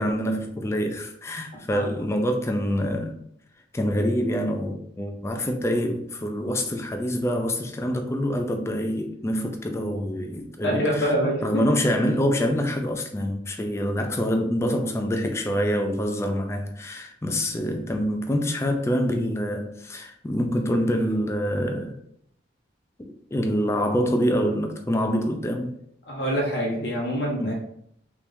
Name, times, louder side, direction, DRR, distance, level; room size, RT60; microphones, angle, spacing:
voice 1, 0.0-3.2 3.7-11.1 11.4-22.0 23.0-25.8 27.4-27.5, equal, 15° left, 0.3 m, -26 dB
voice 2, 10.6-11.6 26.1-27.5, equal, 65° left, 1.1 m, -25 dB
3.4 x 3.0 x 2.5 m
head